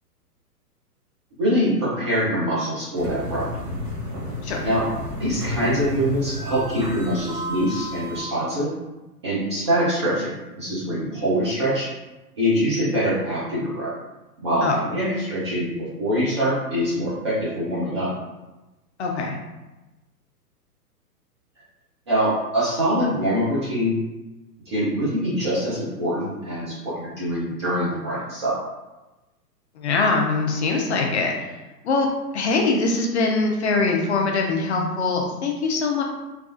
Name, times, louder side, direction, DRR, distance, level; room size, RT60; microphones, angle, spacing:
voice 1, 1.4-3.6 4.6-4.9 5.1-8.7 9.2-11.9 12.4-13.9 14.4-18.1 22.1-24.0 24.7-28.6, equal, 20° right, -9 dB, 0.4 m, -24 dB
sound 1, 2.9-8.2, left 1 dB, 70° right, 0.9 m, -32 dB
voice 2, 19.0-19.4 29.8-31.5 31.8-32.1 32.3-36.0, left 3 dB, 45° left, 1 dB, 0.4 m, -22 dB
3.2 x 2.3 x 2.4 m, 1.1 s
figure-of-eight pair, 120°, 48 cm